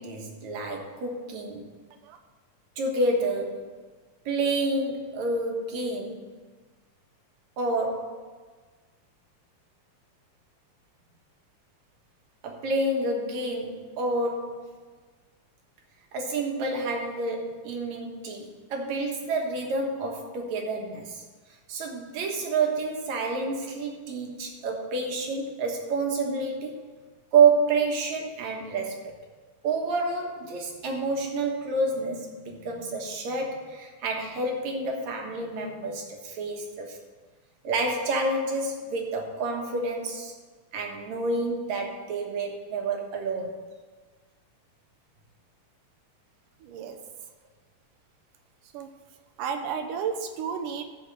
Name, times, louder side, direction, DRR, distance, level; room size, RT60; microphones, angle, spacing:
voice 1, 0.0-1.7 2.8-3.7 4.3-6.4 7.6-8.2 12.4-14.8 16.1-21.2 21.7-26.8 27.3-29.1 29.6-37.0 37.6-40.3 40.7-43.6, right 3 dB, 65° right, 1 dB, 2.6 m, -28 dB
voice 2, 46.6-47.0 48.7-48.9 49.4-50.8, right 6 dB, 80° right, 6 dB, 2.5 m, -32 dB
13.0 x 4.7 x 7.8 m, 1.4 s
omnidirectional pair, 3.7 m